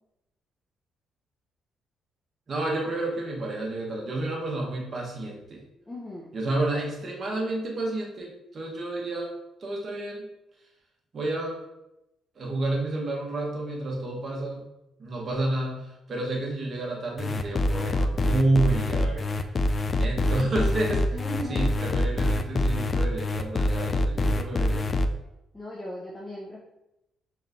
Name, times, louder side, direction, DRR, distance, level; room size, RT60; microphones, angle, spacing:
voice 1, 2.5-5.6 6.3-9.3 9.6-10.3 11.1-11.6 12.4-14.7 15.0-19.3 20.0-21.2 21.5-24.8, right 2 dB, 45° right, -1 dB, 1.1 m, -30 dB
voice 2, 5.9-6.3 21.1-21.7 25.5-26.6, left 1 dB, 15° left, -5 dB, 0.7 m, -37 dB
sound 1, 17.2-25.1, left 2 dB, 35° left, 0.3 m, -25 dB
4.3 x 3.3 x 2.6 m, 0.89 s
cardioid pair, 90°, 0 cm